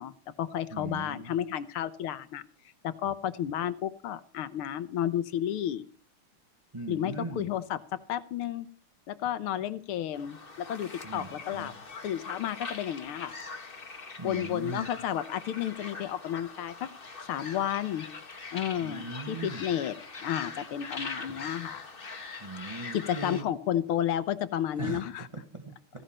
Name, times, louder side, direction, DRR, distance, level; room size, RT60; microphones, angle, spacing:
voice 1, 0.0-2.4 2.8-5.8 6.9-8.7 9.1-11.7 12.0-13.3 14.2-16.9 17.2-18.1 18.5-19.9 20.2-21.8 22.9-25.2, left 10 dB, 85° left, 14 dB, 1.8 m, -32 dB
voice 2, 0.7-1.3 6.7-7.5 11.0-11.8 14.2-14.9 18.8-19.7 22.4-23.5 24.8-25.1 25.3-26.0, right 2 dB, 15° right, 4 dB, 1.2 m, -39 dB
sound 1, 10.1-23.4, left 4 dB, 30° left, 1.5 m, -42 dB
16.0 x 15.5 x 4.3 m, 0.43 s
omnidirectional pair, 2.4 m